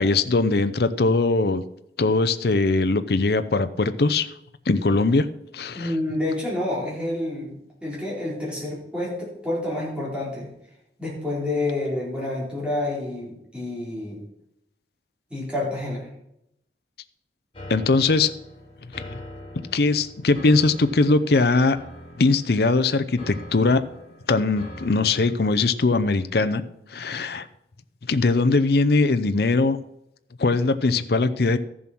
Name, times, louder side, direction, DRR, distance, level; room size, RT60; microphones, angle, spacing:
voice 1, 0.0-1.6 2.0-4.3 4.7-5.3 5.5-5.9 17.7-18.3 19.1-19.2 19.7-21.8 22.2-23.8 24.3-26.6 26.9-27.5 28.1-29.8 30.4-31.6, left 3 dB, 60° left, 11 dB, 0.6 m, -21 dB
voice 2, 5.7-10.5 11.0-14.2 15.3-16.1, left 1 dB, 5° right, -6 dB, 4.5 m, -28 dB
sound 1, 17.5-25.4, equal, 30° left, 2.3 m, -42 dB
13.5 x 7.4 x 6.0 m, 0.79 s
head